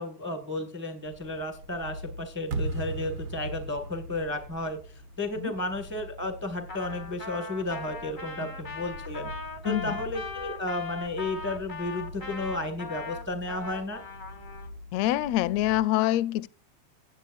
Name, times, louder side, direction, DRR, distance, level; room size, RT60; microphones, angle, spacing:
voice 1, 0.0-9.3 9.6-14.0, left 2 dB, 10° right, 0.5 m, -33 dB
sound 1, 1.0-15.8, left 1 dB, 85° right, 2.4 m, -45 dB
sound 2, 2.5-5.6, right 2 dB, 60° right, 1.3 m, -36 dB
Trumpet, 6.7-14.7, left 4 dB, 55° left, 0.5 m, -39 dB
voice 2, 9.7-10.0 14.9-16.5, left 14 dB, 80° left, 1.6 m, -26 dB
17.0 x 7.9 x 2.5 m
omnidirectional pair, 3.4 m